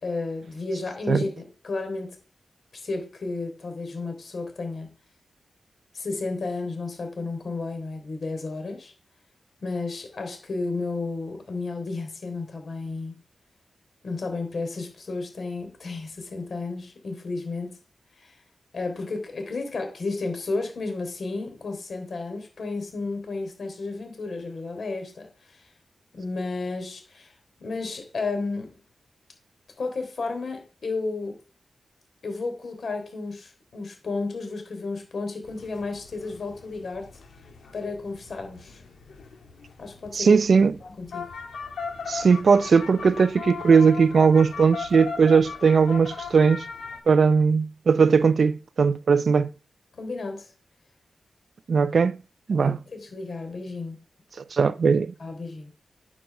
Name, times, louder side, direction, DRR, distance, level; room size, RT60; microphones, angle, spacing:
voice 1, 0.0-2.2 2.7-4.9 5.9-8.9 9.6-13.2 14.0-17.8 18.2-18.4 18.7-25.6 26.1-27.3 27.6-28.8 29.8-31.4 32.2-37.1 37.7-38.8 39.8-40.4 40.8-41.3 50.0-50.5 52.5-54.0 55.2-55.7, left 3 dB, 60° left, 3.7 m, -32 dB
sound 1, 35.4-47.0, left 5 dB, 90° left, 2.0 m, -38 dB
voice 2, 40.1-40.8 42.1-46.7 47.1-49.5 51.7-52.2 52.5-52.8 54.5-55.1, right 5 dB, 60° right, 0.4 m, -19 dB
9.4 x 5.9 x 7.0 m
wide cardioid pair, 105°, 0 cm